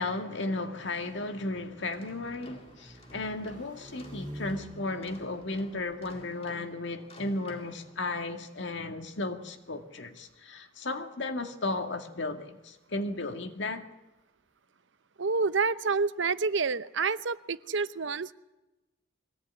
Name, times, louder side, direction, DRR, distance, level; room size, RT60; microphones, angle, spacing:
voice 1, 0.0-13.9, left 2 dB, 65° left, 2.0 m, -34 dB
sound 1, 0.8-6.3, equal, 25° right, 3.0 m, -48 dB
sound 2, 1.9-8.5, left 2 dB, 30° left, 2.3 m, -54 dB
voice 2, 15.2-18.3, right 4 dB, 65° right, 0.8 m, -28 dB
22.5 x 17.5 x 9.6 m
head